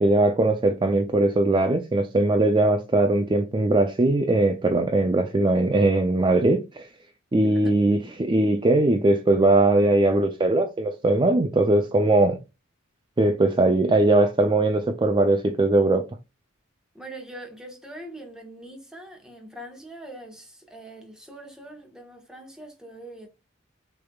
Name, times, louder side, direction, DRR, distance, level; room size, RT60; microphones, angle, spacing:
voice 1, 0.0-6.9 7.3-12.4 13.2-16.1, right 2 dB, 25° right, 0.4 m, -20 dB
voice 2, 7.4-7.7 16.9-23.3, right 1 dB, 5° right, 1.3 m, -42 dB
6.5 x 3.5 x 2.3 m
head